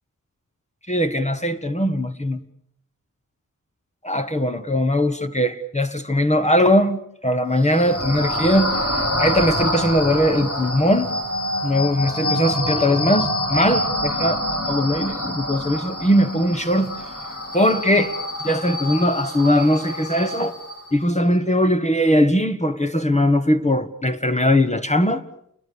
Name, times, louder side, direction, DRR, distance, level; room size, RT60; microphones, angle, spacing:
voice 1, 0.9-2.4 4.0-11.1 11.6-16.9 17.5-18.1 18.4-20.5 20.9-25.2, equal, 20° left, 1.4 m, -20 dB
sound 1, 7.5-20.9, left 1 dB, 45° left, 7.1 m, -26 dB
29.5 x 22.0 x 7.0 m
wide cardioid pair, 105°, 33 cm